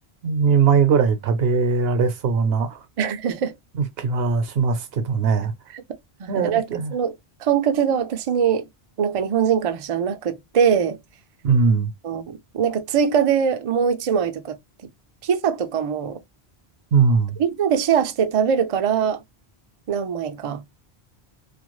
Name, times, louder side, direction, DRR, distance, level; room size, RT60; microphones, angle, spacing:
voice 1, 0.2-2.8 3.7-5.5 6.3-6.9 11.4-11.9 16.9-17.4, right 5 dB, 70° right, 0.8 m, -20 dB
voice 2, 3.0-3.6 5.7-5.8 6.2-7.1 7.4-8.7 9.0-11.0 12.0-14.6 15.2-16.2 17.4-19.2 19.9-20.6, right 7 dB, 55° right, 0.3 m, -22 dB
2.4 x 2.2 x 3.0 m
omnidirectional pair, 1.1 m